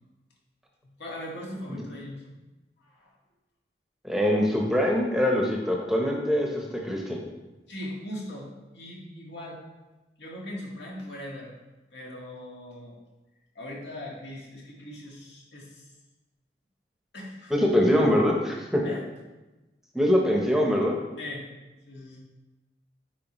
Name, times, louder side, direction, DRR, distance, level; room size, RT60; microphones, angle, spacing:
voice 1, 0.8-2.3 2.8-3.1 7.7-9.6 10.2-11.5 11.9-13.0 13.5-15.9 17.1-17.9 18.8-19.0 21.2-21.4 21.9-22.2, left 1 dB, 85° left, -3 dB, 1.7 m, -40 dB
voice 2, 4.0-7.2 17.5-18.8 19.9-21.0, equal, ahead, -1 dB, 0.7 m, -23 dB
9.1 x 4.7 x 3.0 m, 1.1 s
head